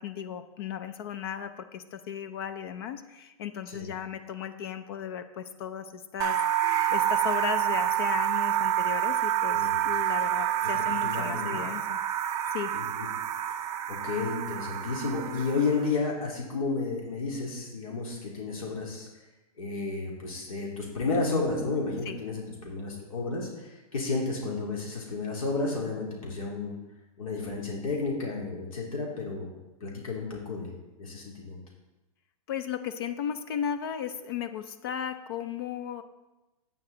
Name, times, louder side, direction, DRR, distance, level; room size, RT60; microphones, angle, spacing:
voice 1, 0.0-6.4 6.7-12.0 12.5-12.7 22.1-22.2 32.5-36.0, left 8 dB, 40° left, 11 dB, 0.5 m, -35 dB
sound 1, 6.2-15.9, right 11 dB, 20° right, 0.5 m, -28 dB
voice 2, 11.0-11.6 12.7-13.1 13.9-19.1 19.6-26.8 27.2-29.5 29.8-30.7 31.0-31.6, left 3 dB, 65° left, -2 dB, 2.7 m, -32 dB
9.3 x 8.7 x 3.9 m, 1.0 s
hypercardioid pair, 165°, 19 cm